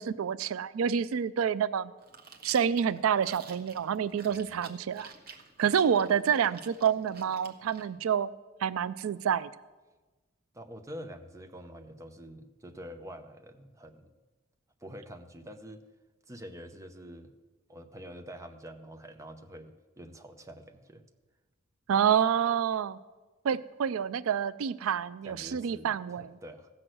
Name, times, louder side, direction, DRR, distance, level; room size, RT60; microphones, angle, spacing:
voice 1, 0.0-1.9 2.4-5.1 5.6-8.3 8.6-9.5 21.9-23.0 23.4-26.3, right 8 dB, 90° right, 17 dB, 0.4 m, -28 dB
Chewing mastication, 2.0-7.9, right 5 dB, 50° right, 1.1 m, -51 dB
voice 2, 4.2-4.6 10.5-14.1 14.8-15.8 16.3-17.3 17.7-21.0 25.2-26.7, equal, 15° right, 6 dB, 0.8 m, -46 dB
15.5 x 6.2 x 7.7 m, 1.2 s
head